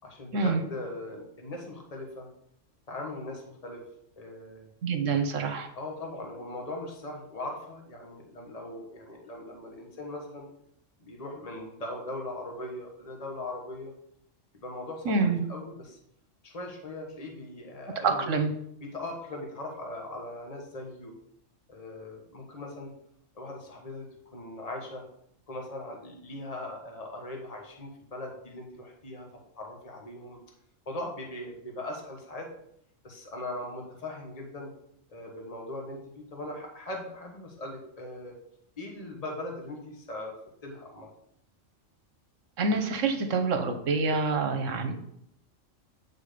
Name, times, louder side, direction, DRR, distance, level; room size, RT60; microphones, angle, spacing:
voice 1, 0.0-2.3 2.9-3.8 4.2-4.7 5.7-10.5 11.0-13.9 14.6-16.0 16.4-18.3 18.8-21.1 21.7-22.9 23.3-24.1 24.3-25.0 25.5-29.3 29.5-30.4 30.8-32.5 33.0-34.7 35.1-38.4 38.8-40.3 40.6-41.1, left 1 dB, 30° left, 1 dB, 1.4 m, -40 dB
voice 2, 4.8-5.7 15.0-15.4 18.0-18.5 42.6-44.9, right 4 dB, 75° right, 7 dB, 1.3 m, -26 dB
8.6 x 4.4 x 5.0 m, 0.74 s
omnidirectional pair, 1.3 m